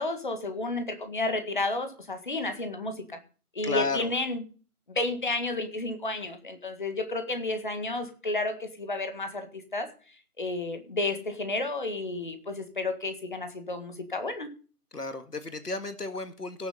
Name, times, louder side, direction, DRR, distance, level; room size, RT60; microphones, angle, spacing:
voice 1, 0.0-3.2 3.5-4.4 4.9-9.9 10.4-14.5, left 2 dB, 30° left, 7 dB, 1.8 m, -31 dB
voice 2, 3.6-4.1 14.9-16.7, left 3 dB, 85° left, 10 dB, 2.0 m, -32 dB
17.0 x 7.2 x 5.4 m, 0.39 s
figure-of-eight pair, 165°, 45 cm